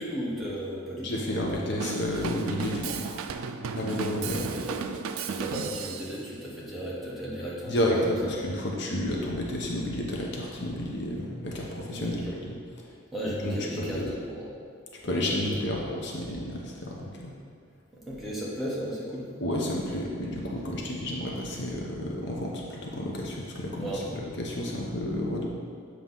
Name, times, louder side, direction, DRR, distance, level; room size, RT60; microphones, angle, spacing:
voice 1, 0.0-1.8 4.3-4.8 5.3-8.3 11.9-12.3 13.1-14.5 15.0-15.3 17.9-19.3 23.8-24.2, equal, ahead, -7 dB, 1.1 m, -35 dB
voice 2, 1.0-3.2 3.7-4.5 7.7-12.6 13.4-14.1 15.0-17.3 19.4-25.5, left 1 dB, 55° left, -2 dB, 0.8 m, -31 dB
Drum kit / Drum, 1.8-6.2, right 6 dB, 80° right, 0.4 m, -34 dB
7.5 x 3.1 x 5.5 m, 2.2 s
head